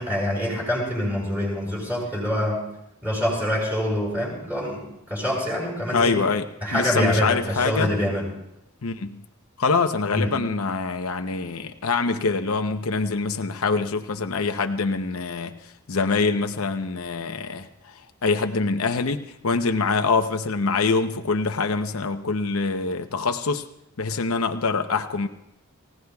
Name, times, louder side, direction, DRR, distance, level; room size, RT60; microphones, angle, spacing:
voice 1, 0.0-2.6 3.0-6.2 6.6-8.2 10.1-10.3, equal, 10° right, -5 dB, 7.9 m, -25 dB
voice 2, 5.9-6.5 6.7-7.9 8.8-9.2 9.6-23.6 24.0-25.3, left 4 dB, 80° left, 6 dB, 0.8 m, -25 dB
28.5 x 16.5 x 2.3 m, 0.83 s
head